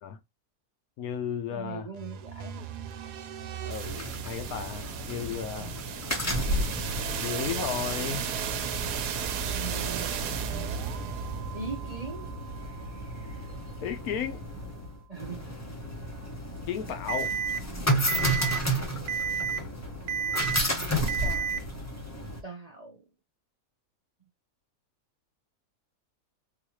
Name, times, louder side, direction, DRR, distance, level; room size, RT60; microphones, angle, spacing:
voice 1, 1.0-1.9 3.5-5.8 7.2-8.3 13.8-14.4 16.7-17.3, left 8 dB, 70° left, 1.1 m, -34 dB
voice 2, 1.5-2.6 5.6-5.8 9.5-10.2 11.5-12.3 15.1-15.5 20.6-21.5 22.4-23.0, right 5 dB, 40° right, 0.6 m, -40 dB
sound 1, 1.9-13.8, right 7 dB, 85° right, 1.2 m, -35 dB
sound 2, 3.8-22.4, equal, 20° left, 0.4 m, -33 dB
Alarm, 17.1-17.6 18.1-18.6 19.1-19.6 20.1-20.6 21.1-21.6, right 7 dB, 70° right, 1.1 m, -30 dB
3.9 x 2.6 x 2.9 m
omnidirectional pair, 1.7 m